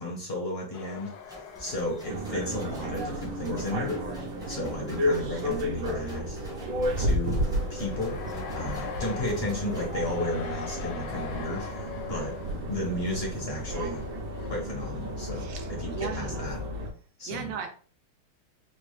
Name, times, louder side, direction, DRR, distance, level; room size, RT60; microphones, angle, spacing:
voice 1, 0.0-4.0 4.5-6.4 7.0-8.2 8.5-12.4 12.7-14.0 14.5-16.6 17.2-17.5, left 1 dB, 55° left, -1 dB, 0.6 m, -34 dB
sound 1, 0.7-4.8 5.3-5.4 6.3-15.6, left 7 dB, 85° left, 0.8 m, -44 dB
sound 2, 1.3-9.9, equal, 5° right, 0.3 m, -49 dB
sound 3, 2.1-16.9, equal, 70° right, 1.4 m, -32 dB
voice 2, 15.4-16.4 17.3-17.7, right 6 dB, 90° right, 4 dB, 1.6 m, -36 dB
4.5 x 2.0 x 3.1 m, 0.42 s
omnidirectional pair, 2.3 m